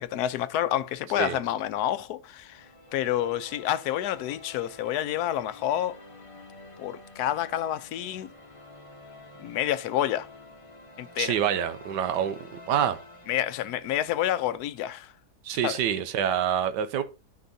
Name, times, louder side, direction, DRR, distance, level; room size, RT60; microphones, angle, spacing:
voice 1, 0.0-2.7 2.9-6.0 6.8-8.3 9.4-10.3 11.0-11.3 13.3-15.1 15.6-15.8, left 12 dB, 75° left, 1.1 m, -28 dB
sound 1, 2.4-14.8, left 2 dB, 25° left, 0.8 m, -49 dB
voice 2, 11.2-12.4 12.7-13.0 15.4-17.0, right 9 dB, 85° right, 1.3 m, -26 dB
12.5 x 5.3 x 2.7 m
omnidirectional pair, 1.8 m